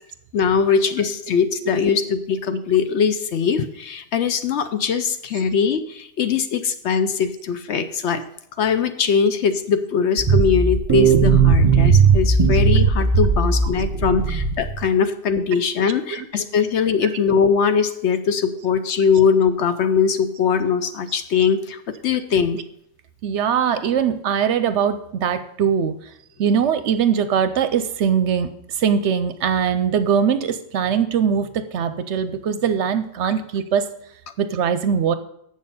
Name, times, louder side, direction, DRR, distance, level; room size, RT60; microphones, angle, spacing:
voice 1, 0.3-8.2 8.6-22.6 33.2-33.3, left 6 dB, 65° left, 9 dB, 0.8 m, -21 dB
sound 1, 10.2-14.8, right 5 dB, 30° right, 1.0 m, -17 dB
voice 2, 23.2-26.1 26.4-33.9 34.4-35.2, right 7 dB, 65° right, 11 dB, 0.8 m, -21 dB
7.5 x 6.5 x 5.5 m, 0.74 s
omnidirectional pair, 1.4 m